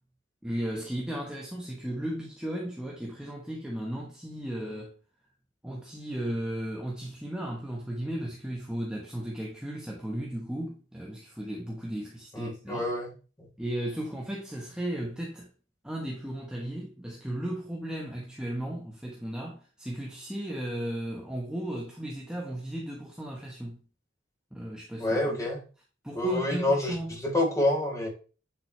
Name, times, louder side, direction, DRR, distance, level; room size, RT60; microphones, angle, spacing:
voice 1, 0.4-4.9 5.6-12.9 13.6-15.5 15.8-23.8 24.5-25.2 26.0-27.2, right 1 dB, 5° right, 1.3 m, -35 dB
voice 2, 12.3-13.1 13.4-13.5 25.0-25.6 26.2-28.1, left 1 dB, 15° left, 3.9 m, -27 dB
10.0 x 5.9 x 3.3 m
head